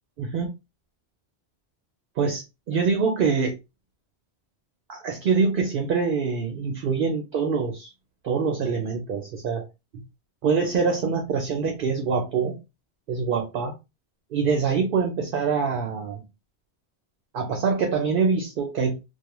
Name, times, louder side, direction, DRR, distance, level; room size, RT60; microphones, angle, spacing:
voice 1, 0.2-0.5 2.2-3.6 4.9-7.9 8.2-9.7 9.9-10.0 10.4-12.6 13.1-13.8 14.3-16.2 17.3-19.0, right 5 dB, 60° right, 0.7 m, -25 dB
2.3 x 2.2 x 2.9 m
omnidirectional pair, 1.1 m